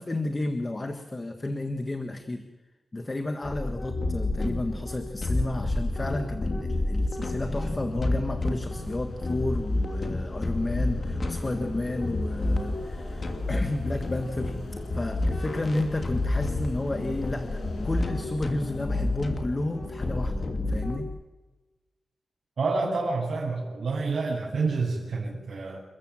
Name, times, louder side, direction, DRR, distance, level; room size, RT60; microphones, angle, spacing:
voice 1, 0.0-2.4 2.9-14.6 14.9-21.1, left 2 dB, 25° left, 7 dB, 1.5 m, -32 dB
sound 1, 3.4-21.0, left 2 dB, 40° left, 2.8 m, -30 dB
sound 2, 8.4-18.0, left 2 dB, 75° left, 6.5 m, -45 dB
voice 2, 22.6-25.8, right 3 dB, 65° right, -8 dB, 7.4 m, -28 dB
28.5 x 15.0 x 7.6 m, 1.2 s
wide cardioid pair, 140°, 0 cm